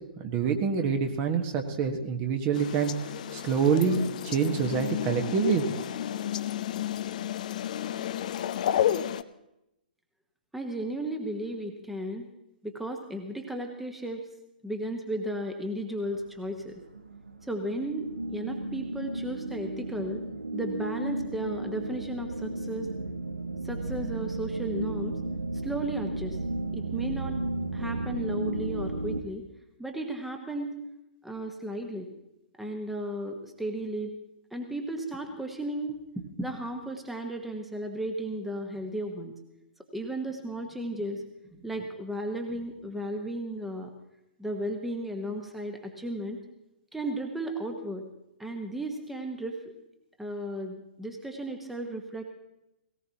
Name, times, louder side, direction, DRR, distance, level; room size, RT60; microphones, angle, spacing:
voice 1, 0.2-2.9 3.3-5.6, right 6 dB, 30° right, 5 dB, 1.5 m, -26 dB
sound 1, 2.5-9.2, left 10 dB, 50° left, 0.6 m, -31 dB
voice 2, 10.5-12.3 12.6-14.3 14.6-16.8 17.4-20.2 20.5-22.9 23.6-25.2 25.5-26.4 26.7-27.4 27.7-29.5 29.8-30.8 31.2-32.1 32.6-34.1 34.5-39.3 39.9-41.2 41.5-43.9 44.4-46.4 46.9-48.0 48.4-49.6 50.2-52.2, right 1 dB, 5° right, 4 dB, 1.3 m, -34 dB
sound 2, 16.0-29.2, right 2 dB, 80° right, 0.9 m, -34 dB
18.0 x 18.0 x 3.0 m, 0.89 s
figure-of-eight pair, 115°, 5 cm